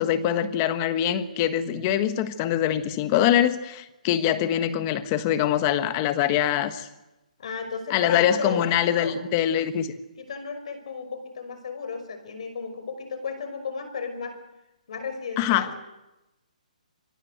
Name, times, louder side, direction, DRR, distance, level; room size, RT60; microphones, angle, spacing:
voice 1, 0.0-6.9 7.9-9.9 15.4-15.7, left 10 dB, 20° left, 11 dB, 1.4 m, -23 dB
voice 2, 7.4-9.2 10.2-14.3 14.9-15.8, left 5 dB, 50° left, 9 dB, 5.7 m, -34 dB
25.0 x 24.5 x 8.1 m, 0.97 s
hypercardioid pair, 170°, 4 cm